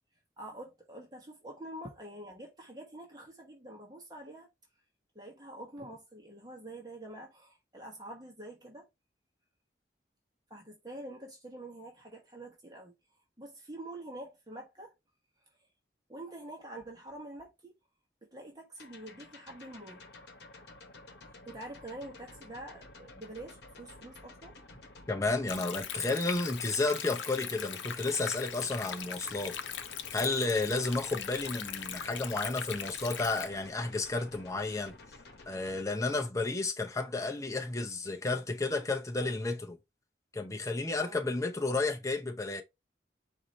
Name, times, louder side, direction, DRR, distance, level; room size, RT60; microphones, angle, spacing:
voice 1, 0.4-4.5 5.1-8.9 10.5-12.9 13.4-14.9 16.1-17.7 18.2-20.0 21.5-24.6 41.0-41.2, right 1 dB, 20° right, 1.1 m, -46 dB
sound 1, 18.8-35.8, left 2 dB, 65° left, 1.0 m, -52 dB
voice 2, 25.1-29.6 30.1-35.0 35.5-39.8 40.3-42.6, left 3 dB, 15° left, 0.6 m, -32 dB
Stream, 25.5-33.5, left 8 dB, 90° left, 0.7 m, -40 dB
4.8 x 2.6 x 4.2 m
head